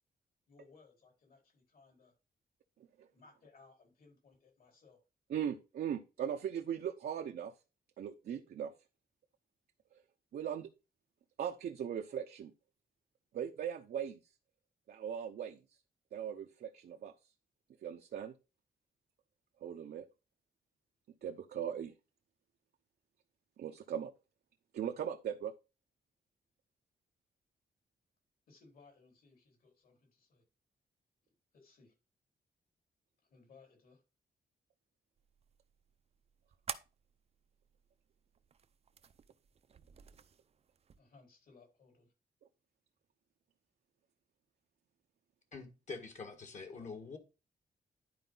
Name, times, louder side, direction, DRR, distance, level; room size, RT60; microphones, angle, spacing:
voice 1, 0.5-2.1 3.1-5.0 28.5-30.4 31.5-31.9 33.3-34.0 41.0-42.1 46.7-46.9, left 4 dB, 65° left, 2 dB, 4.2 m, -62 dB
voice 2, 5.3-7.5 8.0-8.7 10.3-10.7 11.4-12.5 13.3-14.2 14.9-15.6 16.1-17.1 17.8-18.3 19.6-20.1 21.2-21.9 23.6-24.1 24.7-25.5, right 9 dB, 75° right, 4 dB, 0.8 m, -39 dB
sound 1, 35.2-41.0, right 7 dB, 40° right, 0.5 m, -51 dB
voice 3, 45.5-47.2, left 4 dB, 50° left, 6 dB, 1.7 m, -45 dB
11.0 x 4.9 x 3.9 m, 0.29 s
wide cardioid pair, 165°, 16 cm